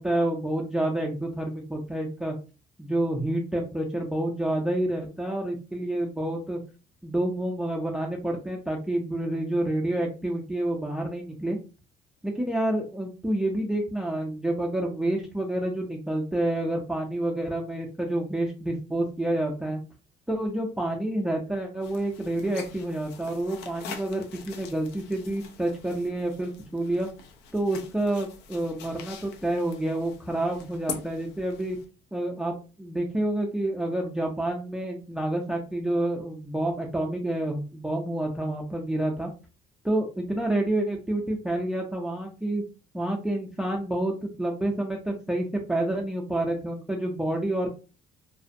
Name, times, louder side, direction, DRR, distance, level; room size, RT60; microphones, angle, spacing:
voice 1, 0.0-2.3 2.8-6.6 7.0-11.6 12.2-19.8 20.3-27.1 27.5-31.8 32.1-39.3 39.8-42.6 42.9-47.7, right 1 dB, 5° right, 1 dB, 0.4 m, -28 dB
sound 1, 21.8-31.8, left 6 dB, 90° left, 0.5 m, -44 dB
2.5 x 2.0 x 2.5 m, 0.34 s
cardioid pair, 110°, 17 cm